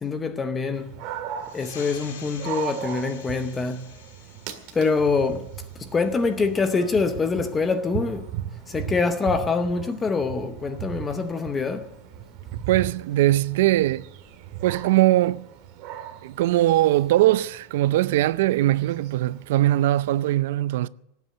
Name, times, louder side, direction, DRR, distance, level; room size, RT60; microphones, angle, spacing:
voice 1, 0.0-0.9 1.5-3.9 4.7-5.5 5.8-8.3 8.7-11.9, left 4 dB, 10° left, 0.7 m, -25 dB
Dog, 0.7-20.3, right 10 dB, 40° right, 1.8 m, -38 dB
sound 1, 1.4-6.5, left 7 dB, 85° left, 3.2 m, -47 dB
voice 2, 12.7-14.1 14.6-15.5 16.2-20.9, right 15 dB, 60° right, 0.5 m, -21 dB
18.5 x 8.3 x 7.9 m
supercardioid pair, 175°, 0 cm